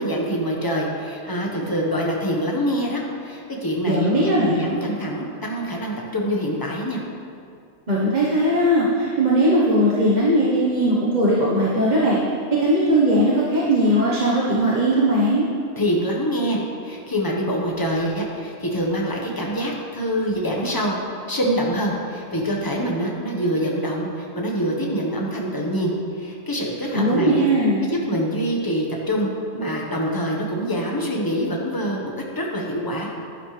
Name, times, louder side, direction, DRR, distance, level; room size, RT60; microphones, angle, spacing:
voice 1, 0.0-7.0 15.8-21.0 21.3-27.4 27.8-33.1, equal, 15° left, -2 dB, 1.3 m, -25 dB
voice 2, 3.8-4.6 7.9-12.2 12.6-15.4 26.9-27.8, right 1 dB, 35° right, -6 dB, 1.3 m, -19 dB
11.5 x 11.0 x 3.3 m, 2.4 s
omnidirectional pair, 1.4 m